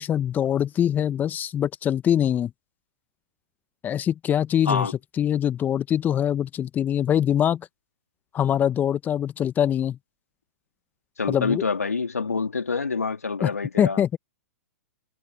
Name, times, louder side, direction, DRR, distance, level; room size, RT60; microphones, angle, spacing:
voice 1, 0.0-2.5 3.8-4.9 5.2-7.6 8.3-10.0 11.3-11.6 13.4-13.5 13.8-14.2, left 10 dB, 20° left, 1.1 m, -23 dB
voice 2, 11.2-14.0, left 4 dB, 85° left, 3.4 m, -26 dB
hypercardioid pair, 110°, 8 cm